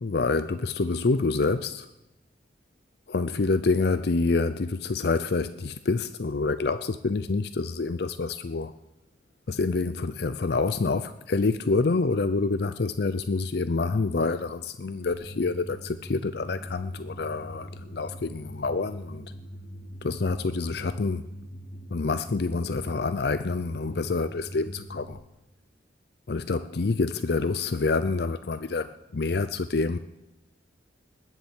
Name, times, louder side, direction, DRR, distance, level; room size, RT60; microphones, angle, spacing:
voice 1, 0.0-1.9 3.1-8.7 9.5-19.3 20.0-21.3 21.9-25.2 26.3-30.0, left 3 dB, 60° left, 0.5 m, -27 dB
sound 1, 15.1-25.1, equal, 40° left, 2.2 m, -42 dB
20.0 x 7.3 x 7.4 m
head